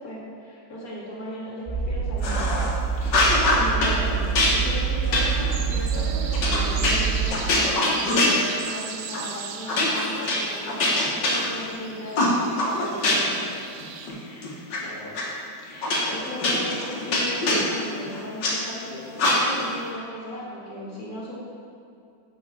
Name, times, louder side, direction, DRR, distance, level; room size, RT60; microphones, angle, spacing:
voice 1, 0.0-2.7 3.0-7.8 8.2-13.6 14.1-15.2 15.6-21.4, left 1 dB, 55° left, -6 dB, 2.4 m, -37 dB
sound 1, 1.7-7.3, right 6 dB, 20° right, 2.1 m, -26 dB
sound 2, 2.2-2.7 3.1-4.0 4.4-8.8 9.1-9.3 9.7-11.8 12.2-13.4 13.8-14.8 15.2-15.3 15.8-18.5 19.2-19.7, left 1 dB, 85° left, 2.0 m, -23 dB
sound 3, 5.5-14.1, right 7 dB, 80° right, 1.3 m, -39 dB
9.4 x 6.5 x 3.7 m, 2.5 s
omnidirectional pair, 1.9 m